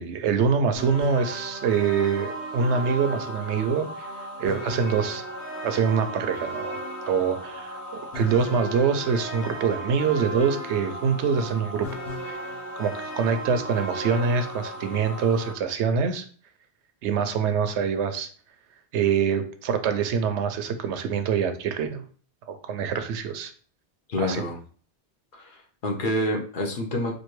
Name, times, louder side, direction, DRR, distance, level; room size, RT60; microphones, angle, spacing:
voice 1, 0.0-4.1 4.4-5.2 5.6-6.8 7.1-11.9 12.2-12.4 12.8-16.3 17.0-18.3 18.9-22.0 22.5-23.5 24.2-24.4, right 6 dB, 90° right, 8 dB, 0.9 m, -25 dB
sound 1, 0.8-15.5, equal, 80° left, 1.3 m, -35 dB
voice 2, 24.1-24.6 25.3-27.1, left 1 dB, 55° left, 1 dB, 0.8 m, -28 dB
4.4 x 2.6 x 3.1 m, 0.43 s
omnidirectional pair, 1.1 m